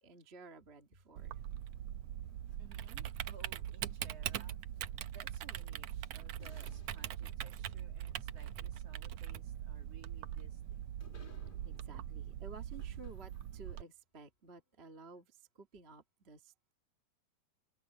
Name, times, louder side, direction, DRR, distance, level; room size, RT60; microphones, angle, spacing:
voice 1, 0.0-1.4 11.6-16.7, right 3 dB, 25° right, 1.6 m, -54 dB
Typing, 1.2-13.8, right 11 dB, 80° right, 1.5 m, -42 dB
sound 1, 2.2-4.6 5.8-5.9 6.4-13.9, left 3 dB, 20° left, 1.4 m, -64 dB
voice 2, 2.6-4.6 5.0-10.9, right 5 dB, 45° right, 4.2 m, -60 dB
omnidirectional pair, 4.0 m